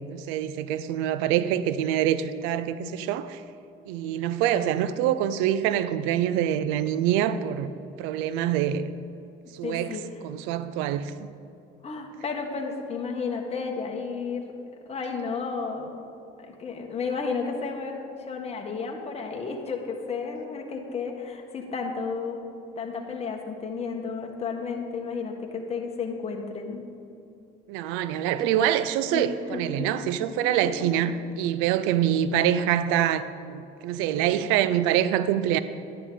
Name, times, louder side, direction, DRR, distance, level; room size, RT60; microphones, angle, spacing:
voice 1, 0.1-3.4 3.9-7.7 8.0-8.8 9.5-11.3 27.7-35.6, right 10 dB, 85° right, 14 dB, 0.5 m, -25 dB
voice 2, 9.6-10.1 11.8-14.4 14.9-16.1 16.6-22.4 22.8-26.8 29.1-29.2 29.5-30.9, left 5 dB, 30° left, 1 dB, 1.4 m, -32 dB
11.0 x 9.8 x 3.9 m, 2.7 s
supercardioid pair, 85°, 20 cm